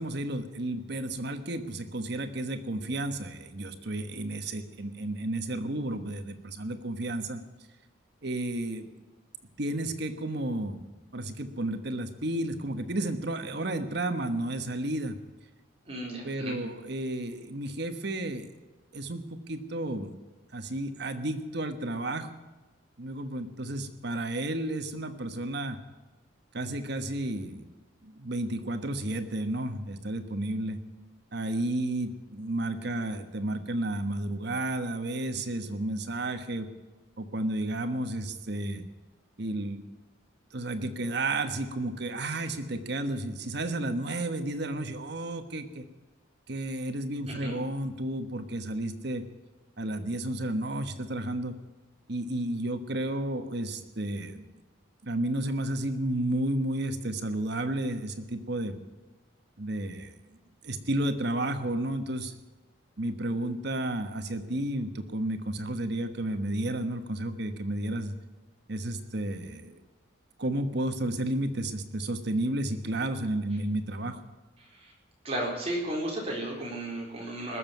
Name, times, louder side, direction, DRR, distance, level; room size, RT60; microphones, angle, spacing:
voice 1, 0.0-7.4 8.2-8.9 9.6-15.2 16.2-18.5 18.9-20.1 20.5-22.3 23.0-25.8 26.5-27.7 28.0-30.8 31.3-36.7 37.2-38.8 39.4-39.8 40.5-45.9 46.5-49.2 49.8-51.5 52.1-54.4 55.0-58.8 59.6-60.1 60.6-62.3 63.0-68.1 68.7-69.8 70.4-74.2, right 1 dB, 55° right, 8 dB, 1.3 m, -32 dB
voice 2, 15.9-16.6 47.3-47.5 74.6-74.9 75.2-77.6, right 1 dB, 30° right, -2 dB, 4.1 m, -34 dB
20.0 x 7.3 x 9.4 m, 1.2 s
head